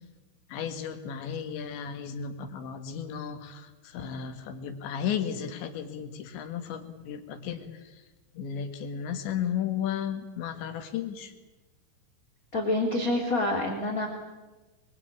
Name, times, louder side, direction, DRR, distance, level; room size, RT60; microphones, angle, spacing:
voice 1, 0.5-7.8 8.4-11.3, left 8 dB, 75° left, 7 dB, 4.1 m, -34 dB
voice 2, 12.5-14.1, left 2 dB, 20° left, 1 dB, 2.6 m, -27 dB
25.5 x 22.5 x 8.8 m, 1.2 s
omnidirectional pair, 5.3 m